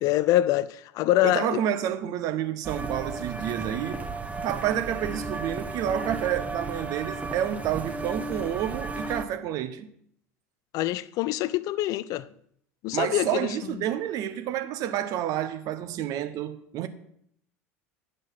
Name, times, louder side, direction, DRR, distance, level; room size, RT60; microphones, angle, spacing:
voice 1, 0.0-1.6 10.7-12.3 12.8-13.5, left 14 dB, 50° left, 0.5 m, -25 dB
voice 2, 1.2-4.1 4.4-9.9 12.9-16.9, right 10 dB, 50° right, 1.0 m, -29 dB
sound 1, 2.6-9.2, right 3 dB, 15° right, 1.2 m, -34 dB
10.5 x 6.6 x 5.7 m
figure-of-eight pair, 70°, 8 cm